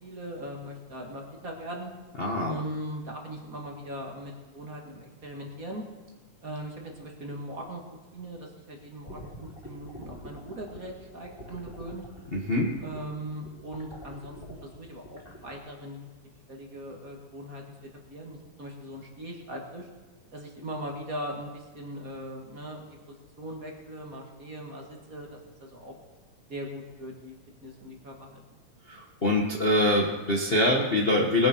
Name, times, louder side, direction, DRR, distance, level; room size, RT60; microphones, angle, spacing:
voice 1, 0.0-1.9 2.5-5.8 6.4-7.8 8.1-12.0 12.8-16.1 16.5-19.9 20.3-26.0 26.5-27.3 27.6-28.4, right 1 dB, 30° right, 0 dB, 2.1 m, -40 dB
voice 2, 2.2-2.5 12.3-12.7 28.9-31.5, left 1 dB, 65° left, -2 dB, 0.5 m, -24 dB
sound 1, 9.1-15.6, equal, 20° left, 3.3 m, -45 dB
20.5 x 9.9 x 4.5 m, 1.3 s
omnidirectional pair, 3.3 m